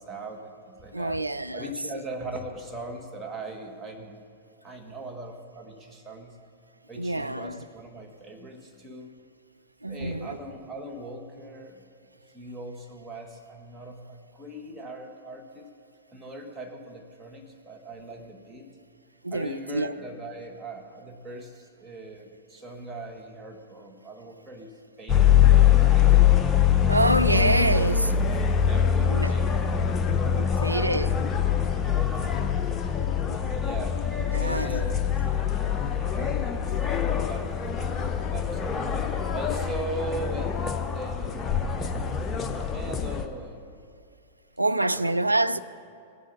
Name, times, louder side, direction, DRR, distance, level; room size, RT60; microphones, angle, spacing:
voice 1, 0.0-1.2 1.5-4.2 4.6-6.4 6.9-9.1 9.9-11.9 12.3-15.7 16.1-18.7 19.3-25.4 25.8-26.3 28.7-29.7 30.3-31.3 31.6-34.0 34.4-37.6 38.2-38.9 39.3-41.7 41.9-43.7 44.7-45.6, right 1 dB, 10° right, 1.5 m, -40 dB
voice 2, 0.9-1.6 7.0-7.6 9.8-10.4 19.2-19.9 26.9-28.1 29.1-29.3 30.4-31.1 34.3-34.8 44.6-45.6, right 1 dB, 85° right, 0.3 m, -26 dB
sound 1, 25.1-43.3, left 9 dB, 20° left, 0.7 m, -23 dB
16.5 x 7.5 x 4.9 m
figure-of-eight pair, 100°, 0 cm